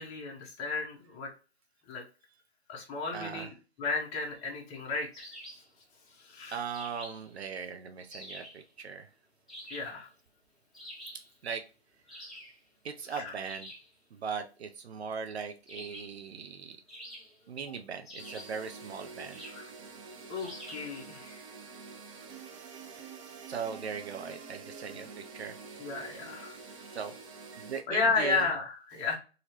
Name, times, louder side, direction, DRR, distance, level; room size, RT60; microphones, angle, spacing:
voice 1, 0.0-1.3 1.9-2.0 2.7-5.3 6.2-6.6 9.7-10.1 12.1-12.2 13.1-13.3 19.4-19.7 20.3-21.4 25.8-27.0 27.9-29.1, left 4 dB, 20° left, -1 dB, 0.7 m, -33 dB
voice 2, 3.1-3.5 6.5-9.1 11.4-11.6 12.8-13.7 14.2-16.8 17.5-19.4 23.5-25.1 25.3-25.6 26.9-27.1 27.5-28.4, right 6 dB, 75° right, 6 dB, 0.6 m, -39 dB
sound 1, 5.1-5.7 6.7-7.3 8.1-8.6 9.5-10.0 10.7-11.3 12.1-12.6 13.4-13.9 15.7-16.2 16.9-17.5 18.0-18.6 19.3-19.7 20.4-20.9, equal, ahead, 1.0 m, -47 dB
sound 2, 18.2-27.8, right 5 dB, 30° right, 0.6 m, -47 dB
2.8 x 2.8 x 2.9 m, 0.34 s
figure-of-eight pair, 125°, 32 cm